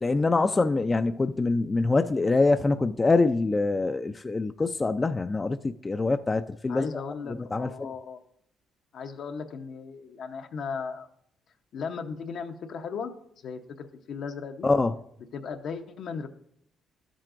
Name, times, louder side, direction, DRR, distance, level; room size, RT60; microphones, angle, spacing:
voice 1, 0.0-7.0 7.3-7.9 14.6-14.9, left 3 dB, 25° left, 0.3 m, -25 dB
voice 2, 6.7-8.2 8.9-11.1 11.7-13.1 13.4-14.7 15.3-16.3, left 5 dB, 70° left, 0.8 m, -36 dB
13.0 x 7.5 x 2.5 m
cardioid pair, 90°, 0 cm